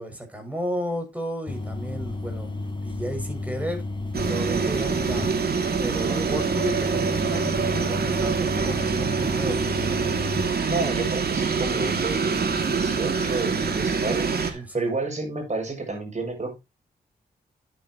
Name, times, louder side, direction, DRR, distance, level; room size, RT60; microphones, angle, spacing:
voice 1, 0.0-3.9 4.2-10.1 14.5-14.9, equal, 10° right, 7.0 m, -33 dB
sound 1, 1.5-10.5, left 2 dB, 25° left, 3.7 m, -33 dB
sound 2, 4.1-14.5, right 5 dB, 60° right, 2.6 m, -25 dB
voice 2, 10.6-16.6, right 3 dB, 40° right, 6.9 m, -30 dB
10.5 x 9.5 x 3.1 m
supercardioid pair, 45°, 18 cm